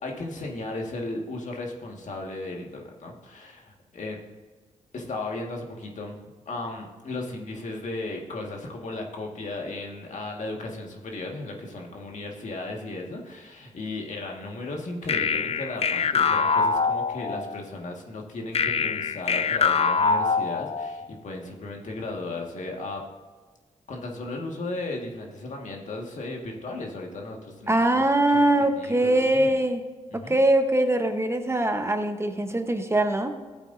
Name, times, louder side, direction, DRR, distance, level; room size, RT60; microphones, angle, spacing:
voice 1, 0.0-4.2 4.9-6.2 6.4-23.0 23.9-28.0 28.8-29.5 30.1-30.4, left 2 dB, 65° left, 1 dB, 1.8 m, -35 dB
sound 1, 15.1-17.6 18.5-21.1, left 5 dB, 50° left, 0.5 m, -24 dB
voice 2, 27.7-29.9 30.1-33.3, right 1 dB, 20° right, 6 dB, 1.0 m, -22 dB
14.0 x 8.1 x 2.7 m, 1.4 s
cardioid pair, 60°, 14 cm